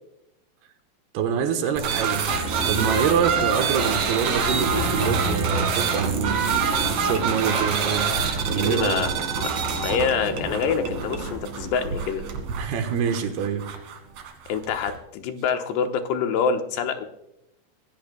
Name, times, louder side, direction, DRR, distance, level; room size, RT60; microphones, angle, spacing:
voice 1, 1.1-2.3 2.7-6.4 6.8-9.0 12.6-13.7, right 7 dB, 75° right, 7 dB, 3.0 m, -26 dB
sound 1, 1.8-15.0, right 6 dB, 55° right, 2.3 m, -27 dB
sound 2, 2.3-11.4, right 1 dB, 50° left, 7.9 m, -31 dB
sound 3, 2.4-12.4, right 4 dB, 25° right, 3.1 m, -42 dB
voice 2, 8.5-9.1 9.4-12.3 14.5-17.1, left 6 dB, 85° left, 6 dB, 3.1 m, -26 dB
24.5 x 15.5 x 2.2 m, 0.83 s
omnidirectional pair, 4.8 m